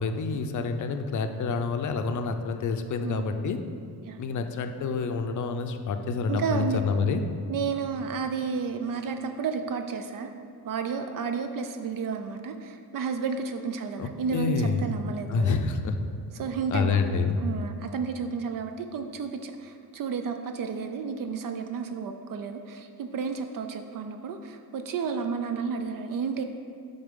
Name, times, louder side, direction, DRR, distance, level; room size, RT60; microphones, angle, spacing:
voice 1, 0.0-3.6 4.2-7.2 14.0-15.0 15.3-16.0 16.7-17.4, left 4 dB, 50° left, 7 dB, 0.5 m, -28 dB
voice 2, 3.0-3.3 4.1-4.2 6.3-6.8 7.5-10.3 10.6-15.6 16.3-17.0 17.4-26.4, right 5 dB, 55° right, 6 dB, 0.5 m, -32 dB
10.0 x 3.9 x 3.7 m, 2.3 s
cardioid pair, 140°, 40 cm